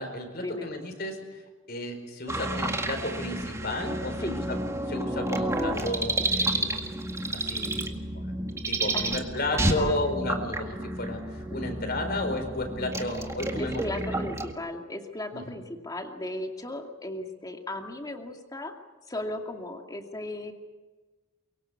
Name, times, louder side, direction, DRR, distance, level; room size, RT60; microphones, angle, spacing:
voice 1, 0.0-1.4 1.7-4.6 4.9-7.1 7.3-8.2 8.7-13.8 14.1-14.2 15.3-15.5, left 1 dB, 50° left, 5 dB, 4.7 m, -33 dB
sound 1, 2.3-14.5, right 1 dB, 15° right, 1.9 m, -30 dB
voice 2, 9.5-10.0 13.6-18.7 19.1-20.5, left 1 dB, 20° left, 3 dB, 2.5 m, -36 dB
23.5 x 23.5 x 8.4 m, 1.2 s
head